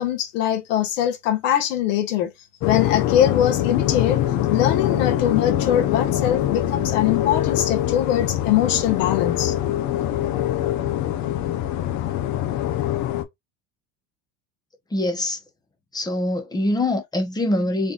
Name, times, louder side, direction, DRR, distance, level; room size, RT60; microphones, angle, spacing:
voice 1, 0.0-2.3 2.6-4.2 4.5-9.6, left 11 dB, 90° left, 1.7 m, -22 dB
sound 1, 2.6-13.2, left 12 dB, 50° left, 1.0 m, -23 dB
voice 2, 14.9-15.4 15.9-17.9, left 1 dB, 10° left, 1.0 m, -24 dB
4.1 x 3.4 x 2.5 m
supercardioid pair, 130°, 36 cm